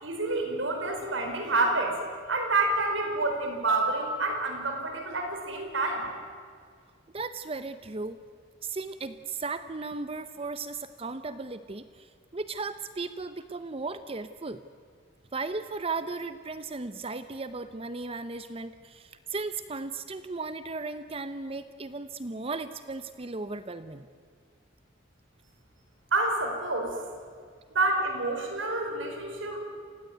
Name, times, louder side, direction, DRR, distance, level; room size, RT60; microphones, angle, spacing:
voice 1, 0.0-2.0 2.3-6.1 26.1-27.0 27.7-29.6, right 2 dB, 85° right, 3 dB, 5.2 m, -28 dB
voice 2, 7.1-8.2 8.6-14.6 15.3-24.1, right 3 dB, 30° right, 11 dB, 0.7 m, -36 dB
28.0 x 16.5 x 9.2 m, 2.1 s
head